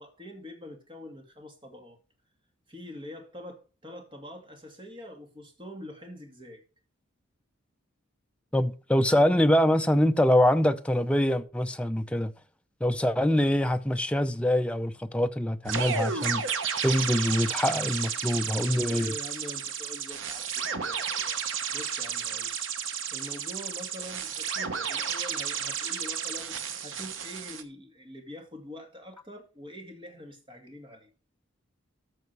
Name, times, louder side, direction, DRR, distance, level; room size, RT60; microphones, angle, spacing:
voice 1, 0.0-2.0 2.7-6.6 18.7-21.4 21.7-22.5 23.1-26.5 26.8-31.1, left 1 dB, 25° right, 2.3 m, -44 dB
voice 2, 8.5-12.3 12.8-16.4 16.8-19.1, left 1 dB, 5° left, 0.6 m, -24 dB
sound 1, 15.6-27.6, right 7 dB, 65° right, 1.1 m, -32 dB
13.5 x 6.4 x 4.6 m
head